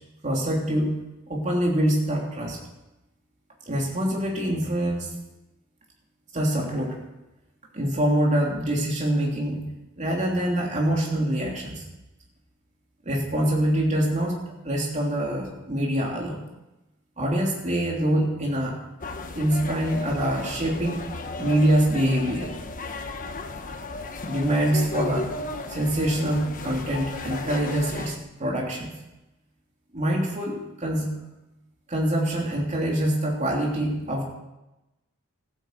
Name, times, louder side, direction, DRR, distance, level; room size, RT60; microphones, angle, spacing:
voice 1, 0.2-1.0 1.3-2.6 3.7-5.1 6.3-7.0 7.7-9.6 10.0-11.8 13.0-14.4 14.6-16.4 17.2-18.8 19.3-21.0 21.4-22.5 24.2-25.3 25.7-28.9 29.9-31.2 31.9-34.2, right 1 dB, 35° right, -2 dB, 3.3 m, -25 dB
sound 1, 19.0-28.2, left 3 dB, 40° left, 1.2 m, -35 dB
15.0 x 9.4 x 8.2 m, 0.98 s
head